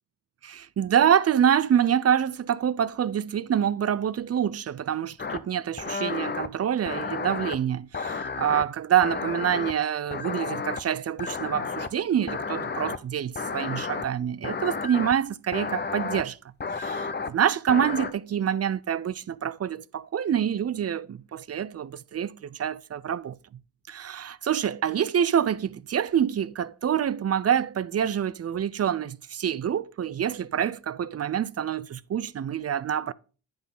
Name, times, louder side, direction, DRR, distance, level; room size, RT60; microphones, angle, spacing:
voice 1, 0.5-16.4 16.7-23.4 23.9-33.1, right 9 dB, 40° right, 0.5 m, -26 dB
sound 1, 5.2-5.4 5.8-6.5 6.9-7.6 7.9-8.6 9.0-9.7 10.1-10.8 11.2-11.9 12.3-13.0 13.3-14.1 14.4-15.1 15.5-16.2 16.6-17.3 17.7-18.1, left 5 dB, 25° left, 0.7 m, -32 dB
10.5 x 3.7 x 5.4 m
supercardioid pair, 55°, 39 cm